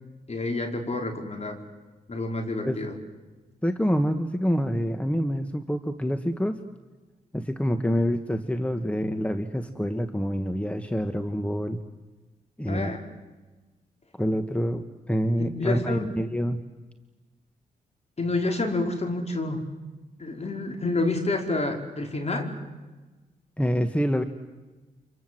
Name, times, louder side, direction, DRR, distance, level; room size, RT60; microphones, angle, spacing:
voice 1, 0.3-1.6 2.1-2.9 12.7-13.0 15.4-16.2 18.2-19.7 20.2-22.5, left 2 dB, 40° left, 3 dB, 5.2 m, -28 dB
voice 2, 3.6-6.6 7.3-11.8 12.6-12.9 14.2-16.6 23.6-24.2, equal, 10° left, 9 dB, 1.6 m, -26 dB
29.5 x 25.5 x 7.8 m, 1.2 s
supercardioid pair, 50°, 17 cm